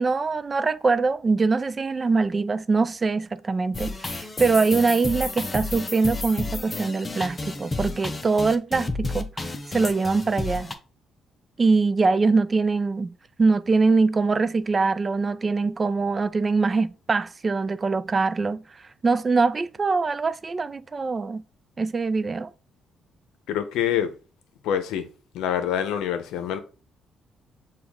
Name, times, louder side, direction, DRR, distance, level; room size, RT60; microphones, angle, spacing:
voice 1, 0.0-10.7 11.6-13.1 13.4-18.6 19.0-21.4 21.8-22.5, right 4 dB, 30° right, 0.3 m, -23 dB
sound 1, 3.7-10.7, left 2 dB, 30° left, 0.6 m, -31 dB
voice 2, 23.5-24.1 24.6-25.1 25.3-26.6, left 9 dB, 85° left, 0.6 m, -26 dB
6.1 x 2.3 x 3.5 m
cardioid pair, 90°, 0 cm